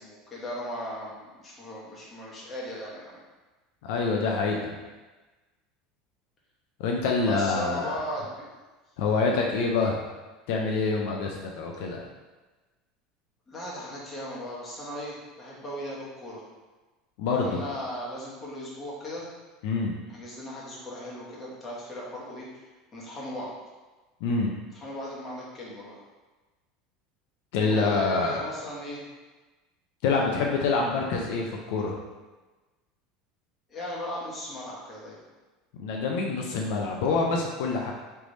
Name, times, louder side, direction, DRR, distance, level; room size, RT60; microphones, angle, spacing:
voice 1, 0.0-3.2 7.2-8.4 13.5-16.4 17.3-19.3 20.1-22.6 22.9-23.5 24.7-26.0 27.6-29.0 33.7-35.2, equal, 25° left, -5 dB, 1.2 m, -37 dB
voice 2, 3.8-4.8 6.8-8.0 9.0-10.0 10.5-12.0 17.2-17.6 19.6-20.0 24.2-24.5 27.5-28.5 30.0-32.0 35.8-37.9, left 4 dB, 75° left, 0 dB, 0.5 m, -26 dB
3.3 x 3.2 x 4.0 m, 1.2 s
supercardioid pair, 140°, 0 cm